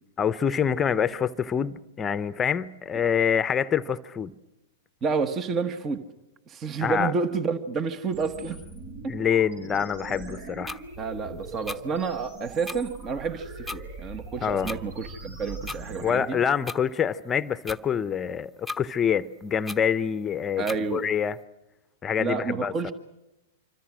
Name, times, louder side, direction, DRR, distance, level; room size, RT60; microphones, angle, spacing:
voice 1, 0.2-4.3 6.8-7.1 9.1-10.8 14.4-14.7 16.0-20.6 20.9-21.4 22.0-22.9, left 7 dB, 20° left, 0.8 m, -26 dB
voice 2, 5.0-6.0 6.5-8.6 9.0-9.1 11.0-16.4 20.6-21.1 22.2-22.9, right 5 dB, 30° right, 1.3 m, -29 dB
sound 1, 8.1-16.1, right 3 dB, 60° right, 7.7 m, -41 dB
sound 2, 10.7-10.8 11.7-11.8 12.7-12.8 13.7-13.8 14.7-14.8 15.7-15.8 16.7-16.8 17.7-17.8 18.7-18.8 19.7-19.8 20.7-20.8, left 2 dB, ahead, 1.1 m, -35 dB
26.0 x 25.0 x 6.3 m
hypercardioid pair, 105°, 0 cm